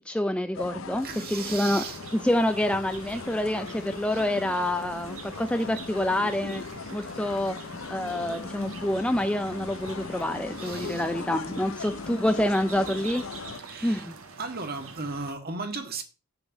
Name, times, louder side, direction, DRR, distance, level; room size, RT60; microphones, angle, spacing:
voice 1, 0.1-1.9 2.1-6.6 6.9-7.6 7.9-13.2 13.8-14.1, left 1 dB, 5° left, 0.5 m, -27 dB
sound 1, 0.5-13.6, left 4 dB, 60° left, 0.6 m, -39 dB
voice 2, 1.0-2.0 10.6-11.1 13.6-14.1 14.4-16.0, right 4 dB, 45° right, 1.8 m, -36 dB
sound 2, 1.4-15.3, right 4 dB, 70° right, 1.8 m, -45 dB
8.4 x 6.5 x 7.2 m
head